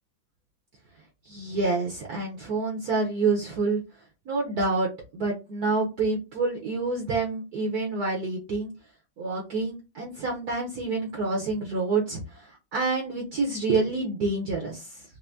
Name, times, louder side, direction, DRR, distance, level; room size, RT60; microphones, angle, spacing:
voice 1, 1.3-3.8 4.3-8.7 9.2-15.0, right 3 dB, 60° right, -1 dB, 1.1 m, -28 dB
5.5 x 2.1 x 2.5 m, 0.28 s
omnidirectional pair, 2.2 m